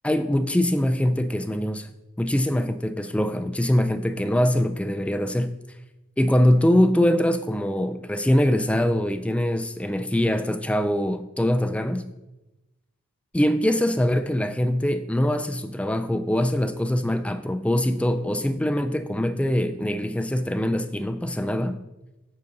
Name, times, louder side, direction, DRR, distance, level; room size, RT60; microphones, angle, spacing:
voice 1, 0.0-1.9 2.2-5.6 6.2-12.1 13.3-21.8, left 1 dB, 5° left, 0.3 m, -23 dB
9.3 x 4.0 x 6.6 m
head